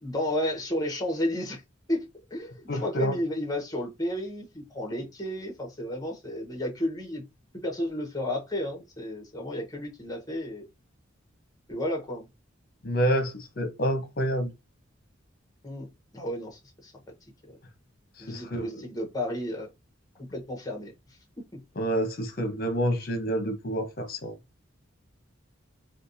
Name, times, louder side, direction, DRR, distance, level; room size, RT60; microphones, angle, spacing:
voice 1, 0.0-1.6 1.9-7.2 7.6-10.6 11.7-12.3 15.6-15.9 16.1-16.9 17.5-17.6 18.2-19.7 20.3-20.9, left 1 dB, 20° left, 1.2 m, -32 dB
voice 2, 2.7-3.2 12.8-14.5 18.2-18.8 21.8-24.3, equal, 50° left, 0.9 m, -28 dB
4.5 x 2.3 x 2.6 m
head